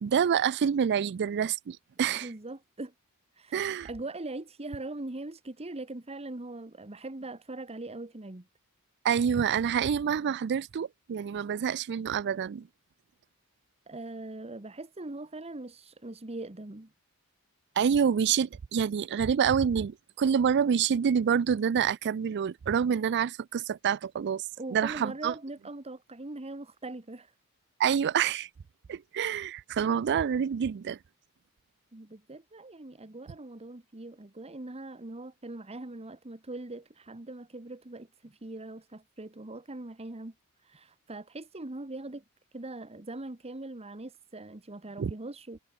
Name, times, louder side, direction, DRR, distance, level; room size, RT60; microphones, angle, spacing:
voice 1, 0.0-2.3 3.5-3.9 9.0-12.7 17.8-24.5 24.7-25.3 27.8-28.5 28.9-31.0 45.0-45.1, right 7 dB, 50° right, 0.4 m, -27 dB
voice 2, 2.1-2.9 3.4-3.6 3.8-8.5 13.9-16.9 24.6-27.3 31.9-40.3 40.6-42.2 42.5-45.6, right 2 dB, 30° right, 1.2 m, -41 dB
head